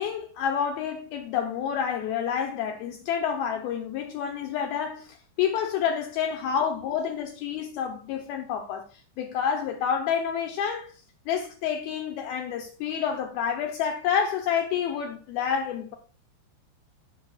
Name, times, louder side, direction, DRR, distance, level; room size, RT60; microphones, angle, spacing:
voice 1, 0.0-8.8 9.2-10.9 11.3-16.0, left 8 dB, 80° left, 2.2 m, -28 dB
15.5 x 6.3 x 2.3 m
omnidirectional pair, 5.2 m